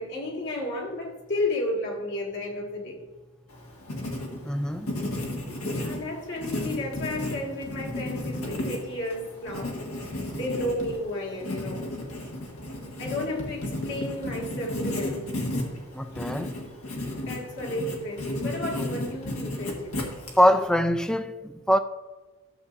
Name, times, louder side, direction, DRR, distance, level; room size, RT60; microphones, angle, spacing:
voice 1, 0.0-3.0 5.7-12.0 13.0-15.3 16.1-16.3 17.3-20.1, left 1 dB, 55° left, 1.8 m, -33 dB
Writing, 3.5-20.7, left 1 dB, 75° left, 1.7 m, -34 dB
voice 2, 4.4-4.9 15.9-16.5 20.4-21.8, equal, 5° left, 0.3 m, -23 dB
12.5 x 7.1 x 2.6 m
head